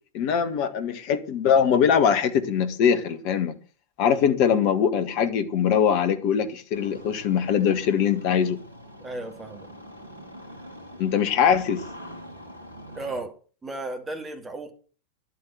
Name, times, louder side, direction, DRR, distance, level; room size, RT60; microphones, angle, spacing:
voice 1, 0.1-3.5 4.0-8.6 11.0-11.8, left 7 dB, 45° left, 1.7 m, -22 dB
Engine starting, 6.7-13.2, equal, 80° right, 2.9 m, -44 dB
voice 2, 9.0-9.7 12.9-14.7, right 2 dB, 15° right, 2.5 m, -35 dB
11.5 x 8.6 x 7.8 m
figure-of-eight pair, 90°, 0 cm